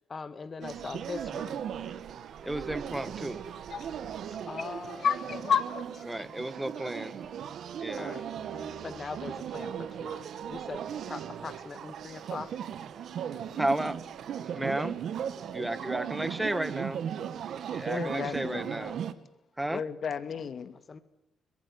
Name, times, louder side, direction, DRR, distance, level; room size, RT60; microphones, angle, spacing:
voice 1, 0.1-1.6 4.5-5.3 6.8-7.1 8.0-8.3 8.5-12.5 16.2-16.3 18.7-19.0 20.9-21.0, left 4 dB, 35° left, 1.9 m, -42 dB
sound 1, 0.6-19.1, right 8 dB, 65° right, 2.1 m, -37 dB
voice 2, 2.4-3.4 6.1-7.2 7.8-8.2 13.6-14.0 14.4-15.0 15.5-17.1 17.7-19.0 19.6-19.8, right 1 dB, 10° right, 1.5 m, -33 dB
voice 3, 5.0-6.0 17.9-18.7 19.7-20.8, left 7 dB, 50° left, 2.3 m, -31 dB
23.5 x 22.0 x 9.8 m
cardioid pair, 100°, 0 cm